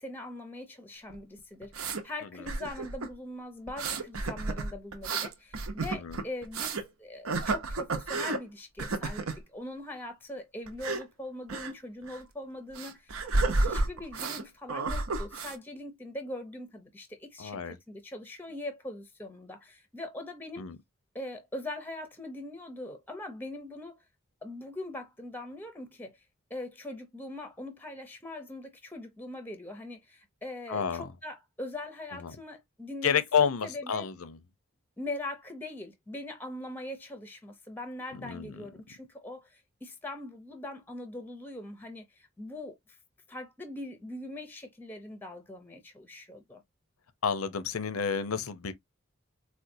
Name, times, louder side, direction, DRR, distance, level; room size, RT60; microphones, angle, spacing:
voice 1, 0.0-20.7 21.1-24.0 24.4-26.2 26.5-34.1 35.0-43.0 43.3-46.6, left 1 dB, 10° left, 0.5 m, -42 dB
sound 1, 1.1-2.0 2.5-3.1 3.7-6.9 7.3-8.4 8.8-9.4 10.7-11.0 11.5-11.7 12.0-12.2 12.8-14.4 14.7-15.6, right 3 dB, 80° right, 0.7 m, -31 dB
voice 2, 17.4-17.8 20.6-20.8 30.7-31.0 32.2-32.3 33.0-34.4 38.1-38.6 47.2-48.7, left 7 dB, 85° left, 0.6 m, -30 dB
4.3 x 2.2 x 2.6 m
head